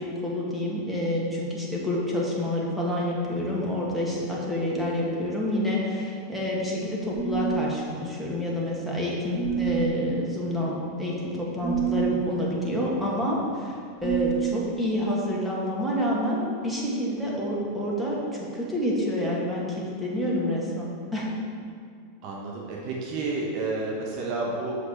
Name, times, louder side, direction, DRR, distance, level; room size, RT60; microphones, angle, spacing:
voice 1, 0.0-21.3, left 1 dB, 5° right, -5 dB, 1.7 m, -28 dB
sound 1, 7.1-7.8 9.3-10.0 11.6-12.2 14.0-14.7, right 11 dB, 30° right, 0.3 m, -27 dB
voice 2, 12.7-13.1 22.2-24.7, right 3 dB, 50° right, -2 dB, 1.0 m, -31 dB
6.5 x 4.7 x 4.3 m, 2.2 s
hypercardioid pair, 95°, 0 cm